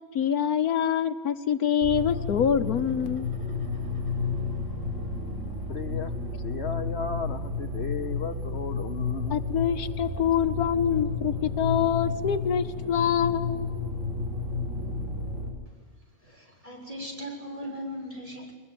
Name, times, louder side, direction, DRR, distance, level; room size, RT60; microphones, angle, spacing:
voice 1, 0.1-3.3 9.3-13.7, left 8 dB, 85° left, 10 dB, 1.5 m, -25 dB
sound 1, 1.8-15.5, left 3 dB, 55° right, 5.1 m, -31 dB
voice 2, 5.7-6.1 6.4-9.4, left 6 dB, 50° left, 8 dB, 1.0 m, -35 dB
voice 3, 16.2-18.5, equal, 25° right, 0 dB, 6.8 m, -38 dB
21.5 x 21.0 x 9.6 m, 1.5 s
omnidirectional pair, 1.5 m